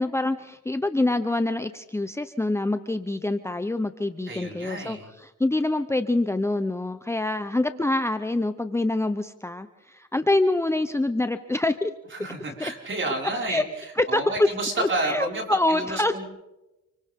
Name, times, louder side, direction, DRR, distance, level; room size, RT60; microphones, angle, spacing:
voice 1, 0.0-11.9 12.6-12.7 13.5-13.6 14.0-14.5 14.8-16.1, left 2 dB, 10° left, 9 dB, 0.8 m, -25 dB
voice 2, 4.3-5.1 12.1-16.2, right 2 dB, 40° right, 0 dB, 5.7 m, -30 dB
29.0 x 24.0 x 3.7 m, 1.0 s
cardioid pair, 90°, 30 cm